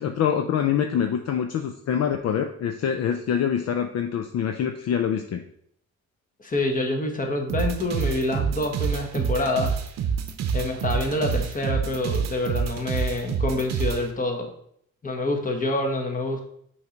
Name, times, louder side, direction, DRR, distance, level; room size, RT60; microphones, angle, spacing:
voice 1, 0.0-5.4, left 8 dB, 60° left, 6 dB, 0.5 m, -25 dB
voice 2, 6.4-9.7 10.5-14.5 15.0-16.4, left 2 dB, 25° left, 3 dB, 1.3 m, -27 dB
sound 1, 7.5-14.0, right 6 dB, 60° right, 0.7 m, -27 dB
5.7 x 3.2 x 5.1 m, 0.68 s
cardioid pair, 90°, 30 cm